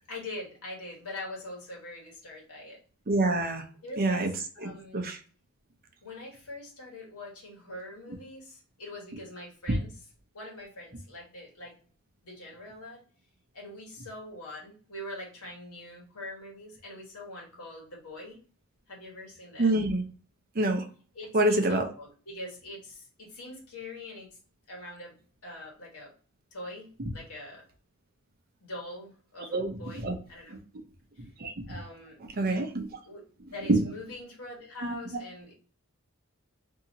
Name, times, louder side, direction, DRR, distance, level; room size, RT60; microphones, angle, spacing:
voice 1, 0.1-2.8 3.8-5.0 6.0-9.9 10.3-11.8 12.2-13.0 13.5-18.4 18.9-19.7 21.1-24.3 24.7-26.1 26.5-27.6 28.6-30.6 31.2-31.3 31.7-32.2 33.0-33.3 33.5-35.5, left 1 dB, 75° left, -2 dB, 1.4 m, -43 dB
voice 2, 3.1-3.6 4.0-4.3 4.6-5.2 9.7-9.8 19.6-20.0 20.6-20.8 21.3-21.8 29.5-30.1 30.5-30.6 31.4-31.5 32.3-32.9 33.7-33.8 34.8-34.9, right 2 dB, 45° right, 5 dB, 0.6 m, -26 dB
2.8 x 2.7 x 3.9 m, 0.40 s
head